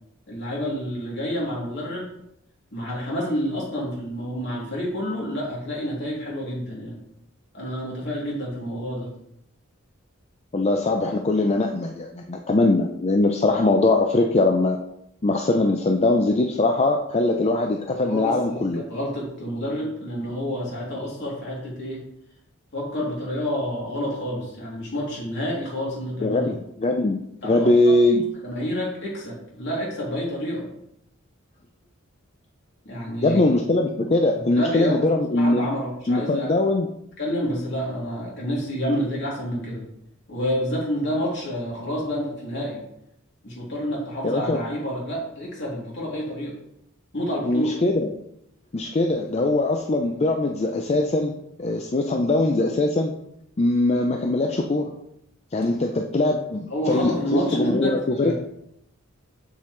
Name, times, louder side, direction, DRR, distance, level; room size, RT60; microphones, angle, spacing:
voice 1, 0.3-2.1 2.7-7.0 7.5-9.1 18.0-22.0 22.7-26.5 27.4-27.9 28.4-30.7 32.8-33.4 34.4-35.0 35.3-36.6 37.2-39.8 40.3-42.8 43.4-46.6 47.1-47.7 56.7-58.3, equal, 55° left, -4 dB, 3.1 m, -29 dB
voice 2, 10.5-14.8 15.2-18.8 26.2-26.5 26.8-27.2 27.4-28.2 33.2-35.7 36.1-36.9 44.2-44.6 47.4-48.1 48.7-51.3 51.6-53.1 53.6-54.9 55.5-58.3, left 2 dB, 30° left, 3 dB, 0.5 m, -21 dB
7.4 x 7.1 x 3.2 m, 0.79 s
head